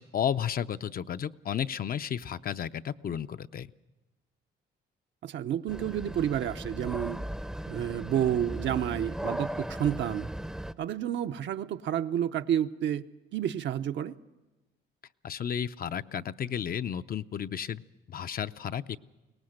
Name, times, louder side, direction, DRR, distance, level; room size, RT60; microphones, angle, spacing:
voice 1, 0.0-3.7 15.2-19.0, left 9 dB, 50° left, 0.6 m, -33 dB
voice 2, 5.2-7.2 7.7-10.3 10.8-13.0 13.3-14.1, right 10 dB, 65° right, 0.7 m, -30 dB
sound 1, 5.7-10.7, right 1 dB, 5° right, 0.6 m, -37 dB
23.0 x 18.5 x 6.5 m
cardioid pair, 90°, 20 cm